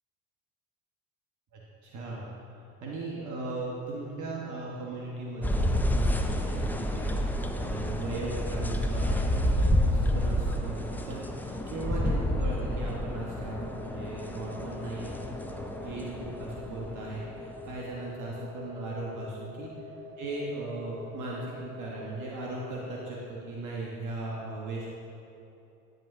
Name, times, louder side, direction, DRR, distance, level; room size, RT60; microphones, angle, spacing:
voice 1, 1.5-19.7 20.2-24.9, right 2 dB, 50° right, -4 dB, 1.2 m, -38 dB
sound 1, 5.4-17.9, equal, 5° left, 0.4 m, -29 dB
sound 2, 13.3-23.1, left 2 dB, 20° right, 1.6 m, -45 dB
9.2 x 7.7 x 2.5 m, 2.8 s
hypercardioid pair, 65°, 39 cm